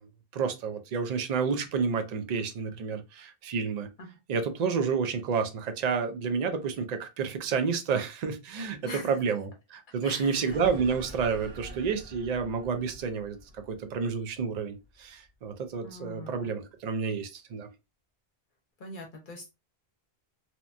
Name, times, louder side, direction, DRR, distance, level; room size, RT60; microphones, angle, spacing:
voice 1, 0.3-3.9 4.3-17.7, right 5 dB, 55° right, 0.5 m, -30 dB
voice 2, 8.8-9.2 10.0-10.6 15.8-16.5 18.8-19.5, left 2 dB, 60° left, 0.7 m, -42 dB
sound 1, 10.5-15.3, right 1 dB, 90° right, 0.9 m, -46 dB
2.8 x 2.1 x 2.5 m
omnidirectional pair, 1.0 m